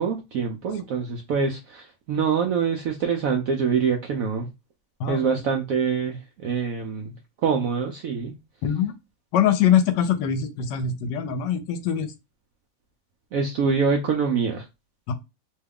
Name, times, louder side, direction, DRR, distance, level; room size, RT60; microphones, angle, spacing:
voice 1, 0.0-4.5 5.1-7.1 7.4-8.4 13.3-14.7, right 6 dB, 75° right, 0.8 m, -25 dB
voice 2, 8.6-8.9 9.3-12.1 15.1-15.2, left 9 dB, 75° left, 1.2 m, -23 dB
3.1 x 2.3 x 3.4 m
omnidirectional pair, 2.0 m